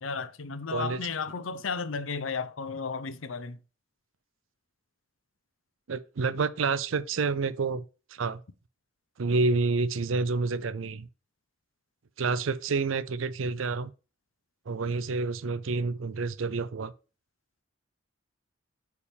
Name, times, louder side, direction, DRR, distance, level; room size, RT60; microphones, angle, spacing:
voice 1, 0.0-3.6, left 5 dB, 85° left, 0.7 m, -33 dB
voice 2, 0.7-1.0 5.9-7.8 8.1-8.4 9.2-11.1 12.2-13.9 14.7-16.9, right 4 dB, 85° right, 0.5 m, -28 dB
8.5 x 4.8 x 3.5 m
head